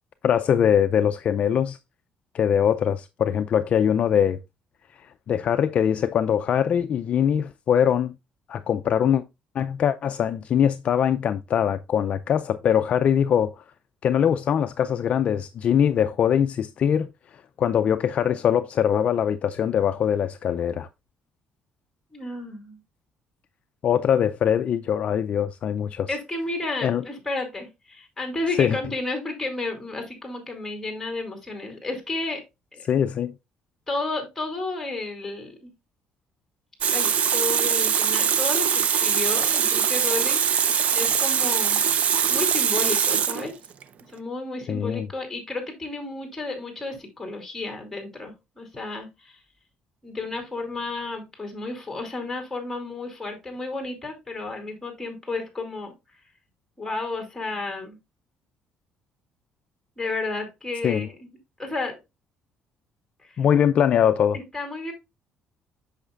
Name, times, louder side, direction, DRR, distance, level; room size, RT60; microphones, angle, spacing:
voice 1, 0.2-1.8 2.3-4.4 5.0-8.1 8.5-9.2 9.5-13.6 14.0-17.1 17.6-20.9 23.8-26.1 26.8-27.0 28.6-28.8 32.9-33.3 44.7-45.1 60.8-61.1 63.4-64.4, left 8 dB, 45° left, 0.4 m, -22 dB
voice 2, 22.1-22.8 26.1-32.4 32.7-32.8 33.9-35.7 36.9-41.8 42.3-43.6 44.1-49.4 50.0-55.9 56.8-58.0 60.0-61.3 61.6-62.0 63.2-63.4 64.3-64.9, left 2 dB, 5° left, 2.7 m, -32 dB
Water tap faucet, 36.8-43.8, right 8 dB, 50° right, 0.6 m, -22 dB
8.2 x 6.4 x 2.4 m
cardioid pair, 140°, 3 cm